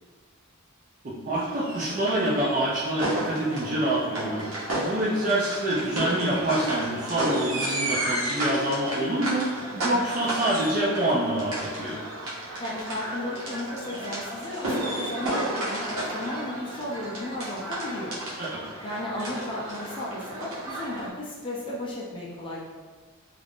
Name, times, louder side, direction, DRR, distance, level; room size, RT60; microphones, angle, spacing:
voice 1, 1.0-4.5 4.7-12.0 18.4-18.7, right 1 dB, 35° right, -7 dB, 0.4 m, -26 dB
sound 1, 1.4-21.1, right 1 dB, 70° right, 0.9 m, -32 dB
voice 2, 12.6-18.2 18.8-22.6, left 1 dB, 25° left, -5 dB, 0.4 m, -34 dB
2.5 x 2.4 x 3.4 m, 1.5 s
head